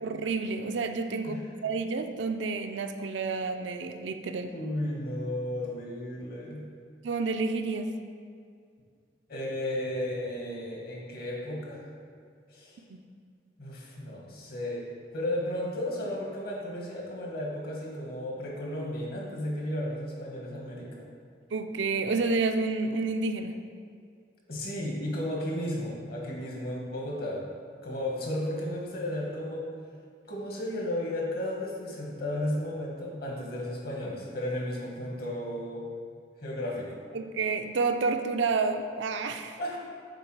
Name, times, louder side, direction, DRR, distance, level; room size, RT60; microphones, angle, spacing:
voice 1, 0.0-4.5 7.0-7.9 12.9-13.0 21.5-23.5 37.1-39.6, right 4 dB, 85° right, 7 dB, 0.5 m, -29 dB
voice 2, 4.5-6.7 9.3-11.9 12.5-12.8 13.6-14.8 15.1-21.1 24.5-27.5 27.8-29.7 30.3-35.8 36.4-37.0 39.6-39.8, left 1 dB, 55° left, -2 dB, 1.3 m, -34 dB
6.8 x 4.3 x 4.7 m, 2.2 s
head